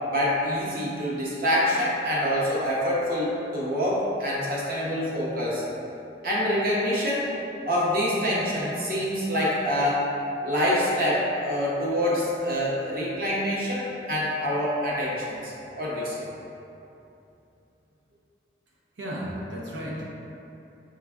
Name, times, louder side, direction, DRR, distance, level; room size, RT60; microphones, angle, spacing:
voice 1, 0.1-5.6 6.2-7.3 7.7-10.1 10.4-16.3, equal, 50° right, -6 dB, 0.8 m, -26 dB
voice 2, 19.0-20.3, equal, 90° right, -4 dB, 0.8 m, -34 dB
4.8 x 3.3 x 2.4 m, 2.8 s
head